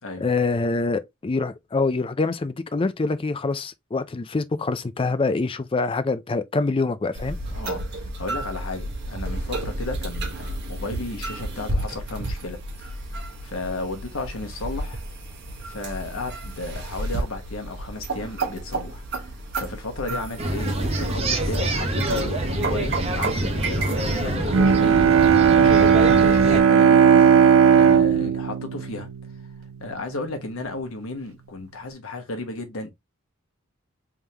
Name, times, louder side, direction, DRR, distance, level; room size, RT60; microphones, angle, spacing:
voice 1, 0.2-7.4 20.1-20.2 28.2-28.3, left 3 dB, 25° left, 0.4 m, -25 dB
sound 1, 7.2-24.4, right 2 dB, 55° right, 1.2 m, -32 dB
voice 2, 7.5-13.0 13.4-15.0 15.6-29.1 29.8-32.9, left 2 dB, 75° left, 1.2 m, -34 dB
sound 2, 20.4-26.6, right 1 dB, 30° right, 0.8 m, -26 dB
Bowed string instrument, 24.5-29.8, right 7 dB, 75° right, 0.5 m, -17 dB
3.6 x 3.4 x 2.8 m
head